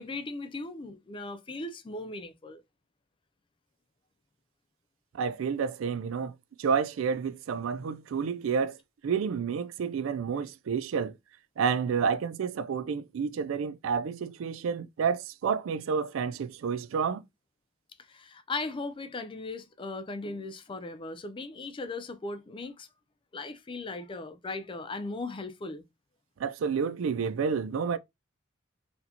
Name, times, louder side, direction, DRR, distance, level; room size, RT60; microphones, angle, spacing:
voice 1, 0.0-2.6 18.1-22.9 23.3-25.8, left 3 dB, 25° left, 0.4 m, -38 dB
voice 2, 5.1-8.8 9.0-11.1 11.6-17.2 26.4-28.0, right 6 dB, 70° right, 0.4 m, -30 dB
4.2 x 2.7 x 2.8 m
head